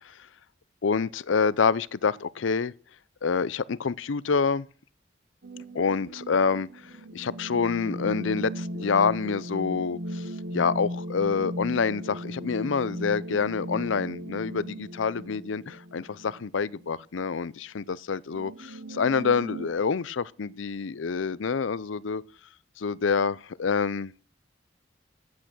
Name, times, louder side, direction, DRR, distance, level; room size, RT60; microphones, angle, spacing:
voice 1, 0.8-2.7 3.2-4.7 5.7-6.7 7.1-10.3 10.5-22.2 22.8-24.1, left 5 dB, 85° left, 0.5 m, -27 dB
sound 1, 5.4-16.9 17.2-17.3 18.3-19.7, equal, 65° right, 1.1 m, -37 dB
14.5 x 8.6 x 6.1 m
head